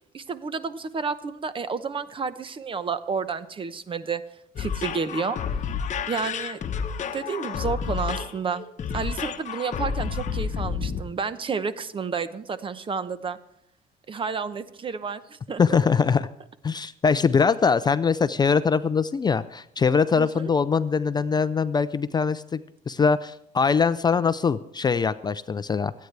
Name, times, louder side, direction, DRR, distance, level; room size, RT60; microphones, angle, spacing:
voice 1, 0.1-4.2 4.6-5.4 6.1-6.6 7.1-8.7 8.9-13.4 14.1-15.6 20.2-20.5, right 5 dB, 30° right, 13 dB, 0.8 m, -30 dB
sound 1, 4.6-11.0, left 6 dB, 45° left, 1.1 m, -30 dB
voice 2, 15.6-16.3 16.6-22.6 22.9-25.9, left 5 dB, 25° left, 13 dB, 0.4 m, -22 dB
26.0 x 9.4 x 3.3 m, 0.78 s
cardioid pair, 110°, 17 cm